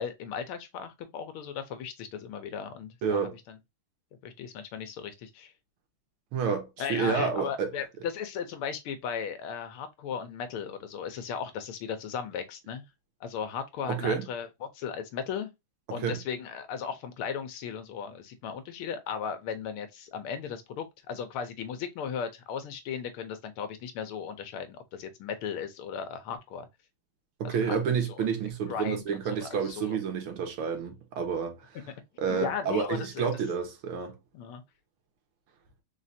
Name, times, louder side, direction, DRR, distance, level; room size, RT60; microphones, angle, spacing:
voice 1, 0.0-3.6 4.2-5.5 6.8-12.8 13.2-15.5 15.9-26.7 27.4-28.3 28.7-30.0 31.9-32.0 32.3-33.3 34.3-34.6, left 7 dB, 85° left, 1.7 m, -36 dB
voice 2, 3.0-3.4 6.3-7.7 13.9-14.3 15.9-16.2 27.4-31.7 32.2-34.2, right 6 dB, 80° right, 2.0 m, -29 dB
4.5 x 3.2 x 2.7 m
omnidirectional pair, 2.3 m